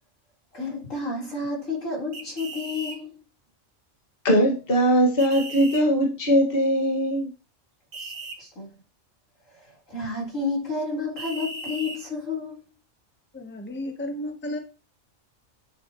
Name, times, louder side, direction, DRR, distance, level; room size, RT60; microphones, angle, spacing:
voice 1, 0.5-3.2 8.0-8.1 8.4-8.7 9.5-12.7, left 3 dB, 80° left, 4.3 m, -31 dB
sound 1, 2.1-3.0 5.2-5.8 7.9-8.4 11.2-12.0, right 2 dB, 70° right, 1.8 m, -36 dB
voice 2, 4.2-7.3, equal, 45° left, 2.0 m, -20 dB
voice 3, 13.3-14.6, left 1 dB, 10° left, 1.0 m, -33 dB
9.8 x 7.4 x 3.0 m
omnidirectional pair, 1.3 m